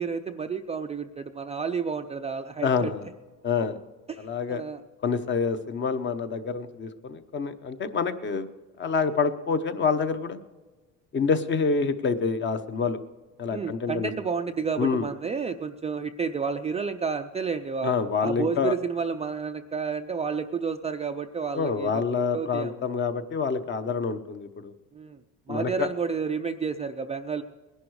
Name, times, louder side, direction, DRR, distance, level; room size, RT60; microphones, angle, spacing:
voice 1, 0.0-3.1 4.1-4.8 13.5-17.9 18.2-22.0 22.3-22.8 24.9-25.2 25.5-27.4, right 5 dB, 20° right, 6 dB, 0.4 m, -31 dB
voice 2, 2.6-3.1 3.4-3.8 4.2-4.6 5.0-8.5 8.8-10.4 11.1-13.0 13.4-14.1 14.8-15.1 17.8-18.7 21.5-24.7 25.5-25.9, left 5 dB, 35° left, 10 dB, 0.9 m, -27 dB
20.0 x 11.0 x 4.8 m, 1.3 s
cardioid pair, 145°, 34 cm